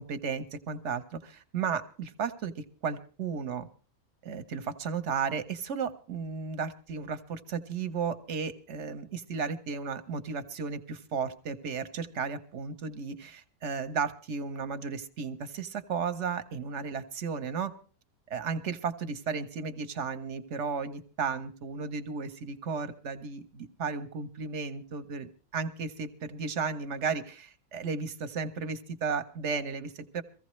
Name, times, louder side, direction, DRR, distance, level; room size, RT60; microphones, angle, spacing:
voice 1, 0.0-3.7 4.2-17.7 18.3-30.2, right 5 dB, 55° right, 10 dB, 1.2 m, -34 dB
23.0 x 15.5 x 3.2 m, 0.38 s
omnidirectional pair, 1.6 m